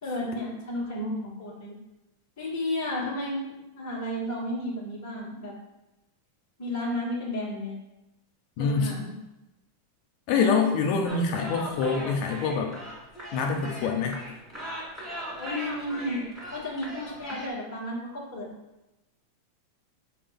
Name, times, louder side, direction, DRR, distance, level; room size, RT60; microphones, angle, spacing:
voice 1, 0.0-1.7 2.4-5.6 6.6-7.7 8.6-9.1 15.4-16.2 16.5-18.5, left 1 dB, 20° left, -5 dB, 0.4 m, -32 dB
voice 2, 8.6-8.9 10.3-12.7 13.3-14.2, left 5 dB, 80° left, 3 dB, 1.8 m, -25 dB
sound 1, 11.1-17.5, equal, 10° right, 0.8 m, -39 dB
7.5 x 2.7 x 5.1 m, 0.96 s
omnidirectional pair, 3.4 m